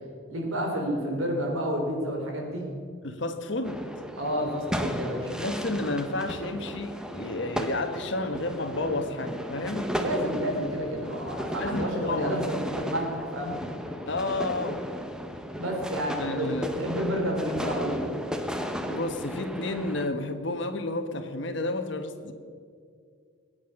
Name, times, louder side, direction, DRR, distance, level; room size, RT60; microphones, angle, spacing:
voice 1, 0.3-2.7 4.2-5.3 10.0-13.6 15.6-18.1, equal, 80° right, 0 dB, 4.2 m, -30 dB
voice 2, 3.0-3.8 5.4-9.9 11.6-12.4 14.1-14.8 16.2-16.7 18.9-22.3, left 2 dB, 60° left, 7 dB, 1.4 m, -31 dB
sound 1, 3.6-20.1, equal, 5° right, 0.9 m, -35 dB
21.0 x 9.3 x 6.6 m, 2.2 s
head